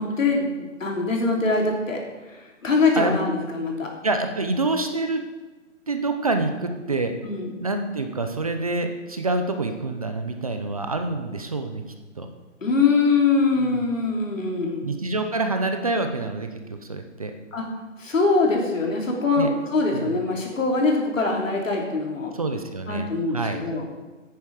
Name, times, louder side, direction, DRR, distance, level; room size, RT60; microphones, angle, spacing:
voice 1, 0.0-2.0 2.3-3.9 7.2-7.5 12.6-14.8 17.5-17.7 18.0-22.3 22.9-23.9, left 3 dB, 85° left, 0 dB, 3.4 m, -23 dB
voice 2, 4.0-5.2 5.9-7.1 7.6-11.8 12.2-12.3 13.6-13.8 14.8-17.3 19.4-19.5 19.9-20.2 22.3-23.6, right 3 dB, 30° right, 6 dB, 0.6 m, -27 dB
9.9 x 9.4 x 4.8 m, 1.3 s
hypercardioid pair, 170°, 38 cm